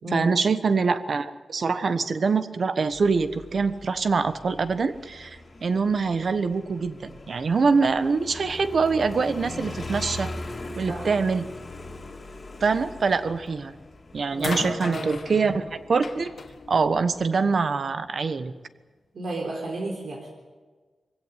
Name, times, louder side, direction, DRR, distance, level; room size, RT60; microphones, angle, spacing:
voice 1, 0.1-10.3 10.8-11.4 12.6-13.7 14.1-16.3 16.7-18.5, right 4 dB, 55° right, 11 dB, 1.2 m, -24 dB
Motorcycle, 2.9-17.2, left 2 dB, 35° left, 2.6 m, -41 dB
sound 1, 13.5-13.8 14.4-17.7 18.7-18.8, left 4 dB, 55° left, 1.8 m, -37 dB
voice 2, 14.3-15.1 19.1-20.3, right 1 dB, 70° right, -1 dB, 3.8 m, -32 dB
23.0 x 16.5 x 9.4 m, 1.4 s
wide cardioid pair, 150°, 0 cm